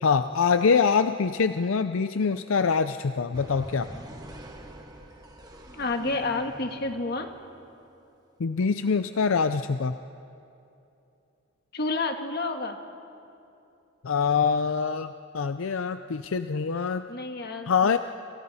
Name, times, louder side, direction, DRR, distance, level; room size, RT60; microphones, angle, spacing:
voice 1, 0.0-3.9 8.4-10.0 14.0-17.0 17.7-18.0, left 5 dB, 75° left, 10 dB, 0.5 m, -24 dB
sound 1, 3.3-7.8, equal, 20° right, 1.5 m, -44 dB
voice 2, 5.7-7.3 11.7-12.8 17.1-18.0, left 3 dB, 50° left, 5 dB, 1.6 m, -30 dB
29.5 x 27.0 x 4.2 m, 2.8 s
head